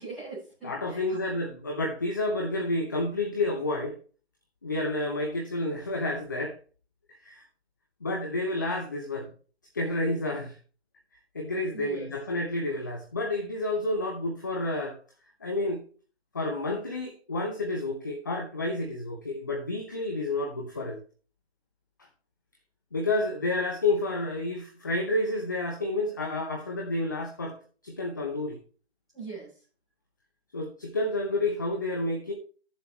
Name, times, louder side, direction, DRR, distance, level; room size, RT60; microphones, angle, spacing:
voice 1, 0.0-1.2 11.7-12.1 29.1-29.6, right 4 dB, ahead, -15 dB, 5.8 m, -41 dB
voice 2, 0.6-4.0 4.6-6.6 7.2-7.4 8.0-9.3 9.7-10.6 11.3-15.0 15.4-15.8 16.3-21.0 22.9-28.6 30.5-32.3, left 2 dB, 20° left, 1 dB, 0.8 m, -30 dB
13.5 x 7.1 x 3.0 m, 0.39 s
figure-of-eight pair, 160°, 32 cm